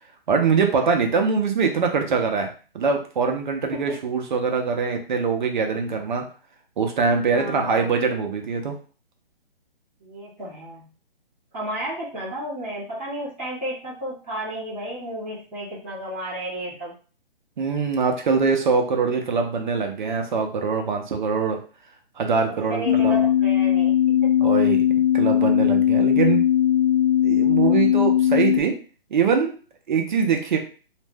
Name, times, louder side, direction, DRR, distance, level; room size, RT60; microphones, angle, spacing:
voice 1, 0.3-2.5 2.7-6.2 6.8-8.8 17.6-21.6 22.2-23.2 24.4-24.8 25.1-26.5 27.2-28.8 29.1-29.6 29.9-30.6, right 5 dB, 50° right, 4 dB, 0.7 m, -23 dB
voice 2, 7.3-7.9 10.0-10.9 11.5-16.9 22.5-24.4 28.3-28.4, right 1 dB, 5° right, -15 dB, 0.4 m, -32 dB
sound 1, 22.9-28.6, left 11 dB, 75° left, 0.5 m, -19 dB
2.5 x 2.1 x 3.4 m, 0.39 s
hypercardioid pair, 150°, 29 cm